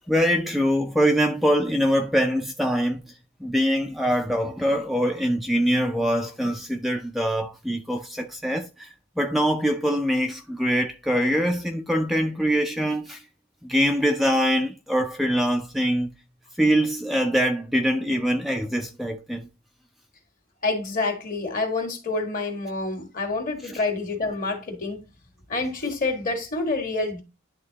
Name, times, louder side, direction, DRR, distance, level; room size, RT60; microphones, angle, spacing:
voice 1, 0.1-3.0 3.4-8.9 9.2-13.2 13.6-16.1 16.6-19.5 23.6-23.8, equal, ahead, 0.4 m, -23 dB
voice 2, 20.6-25.0 25.5-27.2, left 3 dB, 40° left, 1.8 m, -27 dB
10.5 x 3.7 x 2.8 m
head